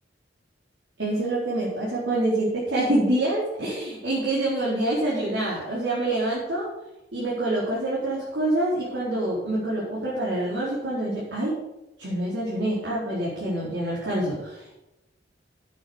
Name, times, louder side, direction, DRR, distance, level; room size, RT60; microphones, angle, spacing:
voice 1, 1.0-6.7 7.1-11.5 12.0-14.8, right 1 dB, 75° right, -8 dB, 4.3 m, -26 dB
9.4 x 8.4 x 7.0 m, 0.93 s
head